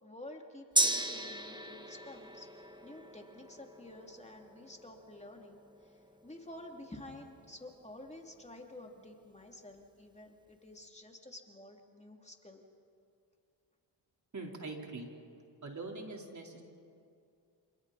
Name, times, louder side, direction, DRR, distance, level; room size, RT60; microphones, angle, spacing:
voice 1, 0.0-12.6, left 1 dB, 15° left, 2 dB, 2.8 m, -51 dB
Gong, 0.8-8.5 8.9-9.0, right 1 dB, 10° right, 1.5 m, -38 dB
voice 2, 14.3-15.1 15.6-16.6, right 3 dB, 35° right, 0 dB, 4.0 m, -43 dB
28.5 x 26.5 x 4.2 m, 2.4 s
supercardioid pair, 60°, 49 cm